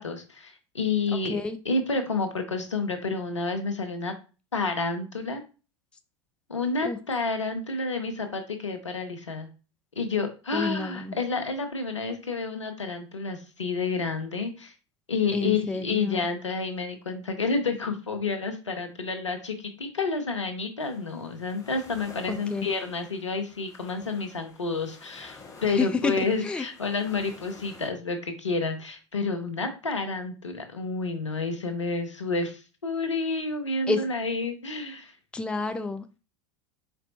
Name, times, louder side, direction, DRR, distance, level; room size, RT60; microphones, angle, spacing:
voice 1, 0.0-1.4 1.6-4.1 4.5-5.4 6.5-9.5 10.0-14.7 15.1-35.2, left 4 dB, 85° left, 6 dB, 0.8 m, -29 dB
voice 2, 10.5-11.2 15.3-16.2 22.5-22.7 25.7-26.1 26.4-26.6 33.9-34.0 35.3-36.2, left 3 dB, 5° left, 9 dB, 0.4 m, -29 dB
sound 1, 20.8-27.9, left 3 dB, 20° left, 1.0 m, -50 dB
4.4 x 4.2 x 2.6 m, 0.33 s
figure-of-eight pair, 85°, 15 cm